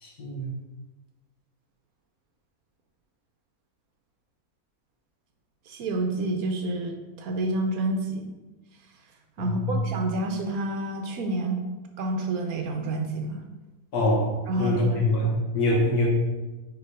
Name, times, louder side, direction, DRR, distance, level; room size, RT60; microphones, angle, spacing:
voice 1, 0.0-0.5 9.4-9.8 13.9-16.1, left 1 dB, 85° left, -3 dB, 1.9 m, -25 dB
voice 2, 5.7-8.3 9.4-11.6 12.0-13.4 14.5-15.0 15.7-15.8, right 2 dB, 75° right, 3 dB, 1.2 m, -29 dB
5.2 x 4.3 x 4.8 m, 1.2 s
omnidirectional pair, 1.6 m